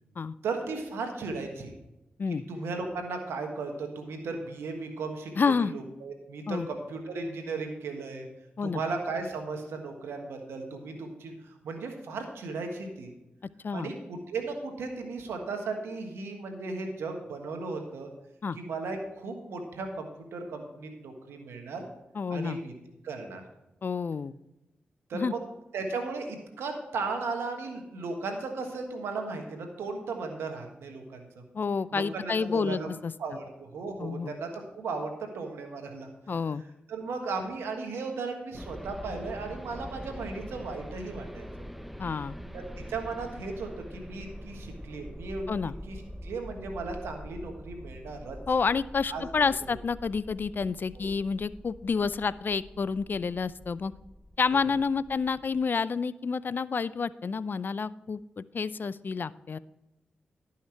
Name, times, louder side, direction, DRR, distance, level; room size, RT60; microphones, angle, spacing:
voice 1, 0.4-1.7 2.5-8.3 8.6-13.1 13.7-18.1 18.5-21.9 22.3-22.7 23.0-23.4 25.1-25.4 25.7-31.4 31.9-32.9 33.2-36.1 36.9-41.4 42.9-45.5 45.9-48.4 49.1-49.8 50.9-51.1 54.5-54.6, right 3 dB, 85° right, 4 dB, 1.3 m, -36 dB
voice 2, 5.4-5.7 6.5-6.7 8.6-8.8 13.6-13.9 18.4-18.6 22.2-22.6 23.8-24.3 25.1-25.3 31.5-33.1 34.0-34.4 36.3-36.6 42.0-42.3 45.5-45.7 48.5-53.9 54.4-59.6, left 5 dB, 55° left, 18 dB, 0.4 m, -29 dB
sound 1, 38.5-55.6, equal, ahead, 0.7 m, -44 dB
12.0 x 5.7 x 4.5 m, 0.95 s
supercardioid pair, 45°, 4 cm